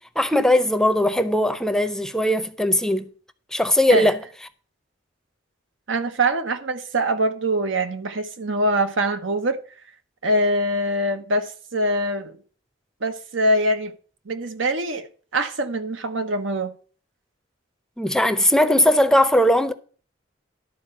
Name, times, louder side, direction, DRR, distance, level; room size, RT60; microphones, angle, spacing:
voice 1, 0.2-3.1 3.5-4.2 18.0-19.7, left 1 dB, 5° left, 0.6 m, -19 dB
voice 2, 5.9-9.6 10.2-12.3 13.0-13.9 14.3-15.1 15.3-16.7, right 1 dB, 85° right, 1.1 m, -23 dB
12.0 x 4.4 x 7.6 m
head